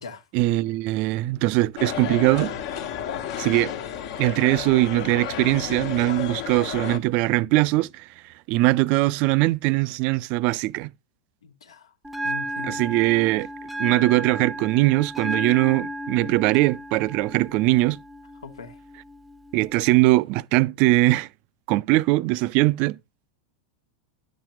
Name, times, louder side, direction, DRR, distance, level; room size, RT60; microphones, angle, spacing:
voice 1, 0.3-2.5 3.4-3.7 4.2-8.1 8.5-10.9 12.7-13.5 13.8-18.0 19.5-21.3 21.7-23.0, right 19 dB, 50° right, 0.4 m, -21 dB
sound 1, 1.8-7.0, left 9 dB, 60° left, 1.2 m, -32 dB
voice 2, 11.4-11.9 12.2-12.9 18.4-18.8, left 6 dB, 80° left, 1.3 m, -40 dB
Bell, 12.0-20.0, right 1 dB, 5° right, 0.6 m, -34 dB
10.5 x 7.2 x 3.1 m
hypercardioid pair, 95°, 3 cm